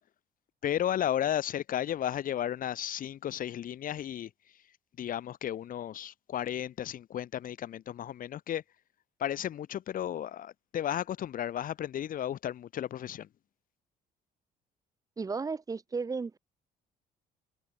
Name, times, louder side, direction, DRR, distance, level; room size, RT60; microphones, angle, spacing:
voice 1, 0.6-4.3 5.0-8.6 9.2-13.3, left 10 dB, 55° left, 2.1 m, -33 dB
voice 2, 15.2-16.4, right 4 dB, 20° right, 0.8 m, -34 dB
cardioid pair, 110°, 17 cm